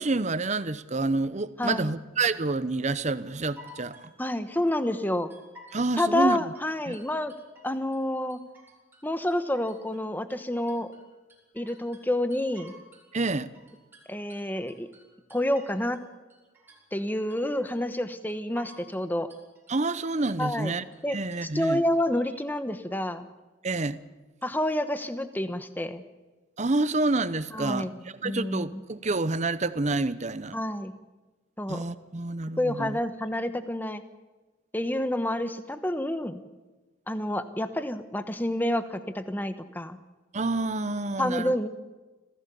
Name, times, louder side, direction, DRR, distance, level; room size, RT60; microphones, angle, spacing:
voice 1, 0.0-4.1 5.7-6.4 6.9-7.0 13.1-13.5 19.7-21.8 23.6-24.0 26.6-30.6 31.7-33.0 40.3-41.5, right 3 dB, 35° right, 0.8 m, -28 dB
voice 2, 1.6-1.9 4.2-5.3 6.0-7.3 7.6-8.4 9.0-10.9 11.5-12.7 14.1-14.9 15.3-16.0 16.9-19.3 20.4-20.7 21.0-23.3 24.4-26.0 27.5-28.8 30.5-30.9 31.6-31.8 32.6-34.0 34.7-36.4 37.1-40.0 41.2-41.7, left 1 dB, 10° left, 1.1 m, -29 dB
sound 1, 3.3-5.0 5.3-6.0 6.3-8.0 8.3-9.0 9.3-13.1 13.3-16.0 16.3-17.0 17.3-18.0 18.3-19.0 19.3-20.0 20.3-21.0 21.3-22.0, equal, 10° right, 5.8 m, -53 dB
26.0 x 16.0 x 7.0 m
head